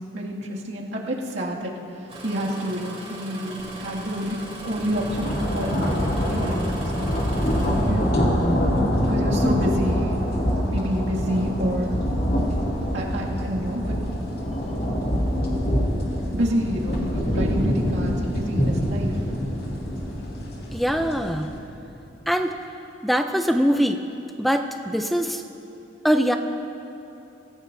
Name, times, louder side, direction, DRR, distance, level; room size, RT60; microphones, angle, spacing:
voice 1, 0.0-1.8 2.2-4.4 4.6-7.2 7.5-8.2 9.0-10.2 10.7-11.9 12.9-14.0 16.3-19.2, equal, 70° right, -4 dB, 2.3 m, -28 dB
Engine starting, 2.1-8.5 9.5-9.8 10.4-10.8 11.4-11.6, right 1 dB, 35° right, 3.0 m, -39 dB
sound 1, 3.8-3.9 4.3-21.6, equal, 55° left, 2.6 m, -25 dB
voice 2, 20.7-21.5 22.3-22.5 23.0-24.0 24.4-25.4 26.0-26.4, equal, ahead, 6 dB, 0.4 m, -22 dB
25.5 x 16.0 x 2.7 m, 2.9 s
head